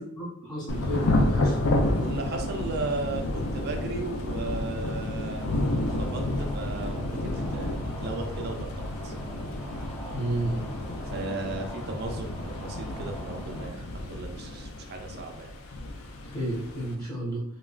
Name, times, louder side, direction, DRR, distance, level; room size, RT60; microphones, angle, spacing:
voice 1, 0.0-1.6 10.1-10.6 16.3-17.4, right 1 dB, 20° left, -6 dB, 1.0 m, -31 dB
Thunder / Rain, 0.7-16.9, left 1 dB, 85° left, 0.4 m, -30 dB
voice 2, 2.0-9.1 11.1-15.5, right 3 dB, 50° right, 3 dB, 0.4 m, -36 dB
sound 1, 5.3-13.7, right 1 dB, 5° left, 0.6 m, -44 dB
2.9 x 2.2 x 2.4 m, 0.67 s
head